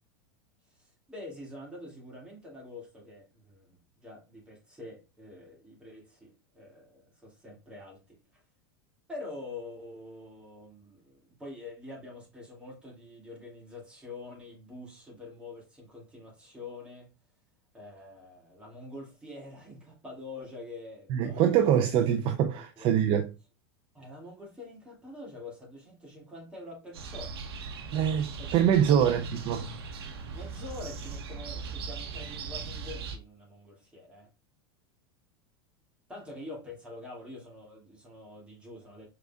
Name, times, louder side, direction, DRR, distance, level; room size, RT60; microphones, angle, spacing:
voice 1, 0.8-8.0 8.3-8.4 9.1-17.1 17.7-21.9 22.6-22.9 23.9-27.4 28.4-29.2 30.3-34.3 36.1-39.1, left 2 dB, 10° right, 2.2 m, -46 dB
voice 2, 21.1-23.3 27.9-29.7, right 9 dB, 45° right, 0.5 m, -24 dB
sound 1, 26.9-33.2, right 5 dB, 85° right, 0.8 m, -39 dB
4.7 x 3.8 x 2.3 m
supercardioid pair, 115°, 13 cm